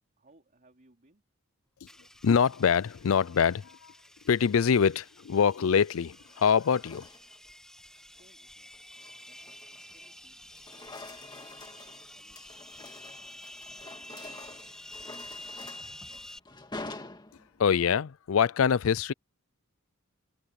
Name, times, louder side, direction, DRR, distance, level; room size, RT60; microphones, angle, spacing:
voice 1, 0.2-1.2 8.0-8.7 9.2-15.5 16.1-16.4, right 2 dB, 40° right, 3.2 m, -66 dB
sound 1, 1.9-16.4, left 1 dB, 5° left, 2.2 m, -49 dB
voice 2, 2.2-3.9 4.2-7.1 17.6-19.1, left 7 dB, 70° left, 0.4 m, -24 dB
sound 2, 4.4-4.9 6.0-7.5 8.0-8.3 8.7-10.2 10.4-17.8, left 2 dB, 20° left, 2.2 m, -47 dB
open air
head